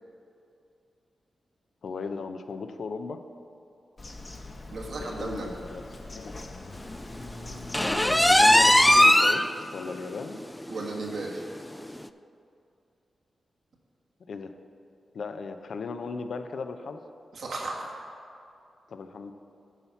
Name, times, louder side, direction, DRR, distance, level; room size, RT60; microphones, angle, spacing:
voice 1, 1.8-3.2 5.0-6.4 7.9-9.4 9.7-10.4 14.3-14.5 15.1-17.0 18.9-19.3, left 4 dB, 75° left, 8 dB, 0.5 m, -36 dB
Bird vocalization bird call bird song, 4.0-9.0, left 2 dB, 45° left, 1.0 m, -41 dB
voice 2, 4.7-5.5 10.7-11.4 17.3-17.9, right 3 dB, 75° right, -2 dB, 1.4 m, -34 dB
sound 1, 7.7-9.5 9.9-10.0 10.4-10.5 10.9-11.0 12.0-12.1, left 1 dB, 10° left, 0.3 m, -18 dB
9.9 x 4.2 x 7.0 m, 2.6 s
cardioid pair, 45°, 0 cm